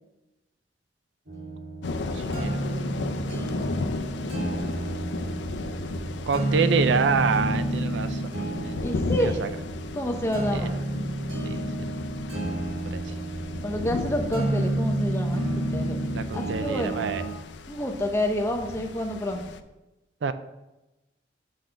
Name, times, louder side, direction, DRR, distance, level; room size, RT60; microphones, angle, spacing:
sound 1, 1.3-17.4, right 1 dB, 65° right, 1.8 m, -30 dB
sound 2, 1.8-19.6, left 3 dB, 80° left, 0.5 m, -35 dB
voice 1, 2.1-2.5 6.3-8.2 8.6-8.8 9.2-9.5 10.5-10.7 11.4-11.6 12.9-13.0 16.1-17.2 20.2-20.3, right 5 dB, 80° right, 12 dB, 0.4 m, -26 dB
voice 2, 8.8-9.4 9.9-10.7 13.6-16.0 16.3-17.0 17.7-19.4, left 1 dB, 15° left, 3 dB, 0.7 m, -28 dB
6.5 x 4.1 x 5.6 m, 1.0 s
head